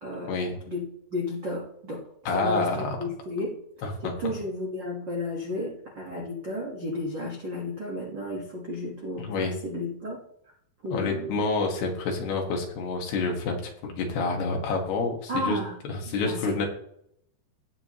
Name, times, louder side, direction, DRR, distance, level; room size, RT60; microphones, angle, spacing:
voice 1, 0.0-2.1 2.3-3.6 4.0-10.2 10.8-11.4 15.3-15.8 16.1-16.6, left 2 dB, 75° right, -2 dB, 1.0 m, -33 dB
voice 2, 2.3-3.0 3.8-4.3 9.2-9.5 10.9-13.6 13.8-15.6 15.9-16.7, left 3 dB, 65° left, 1 dB, 3.6 m, -28 dB
17.0 x 7.6 x 3.1 m, 0.71 s
omnidirectional pair, 5.1 m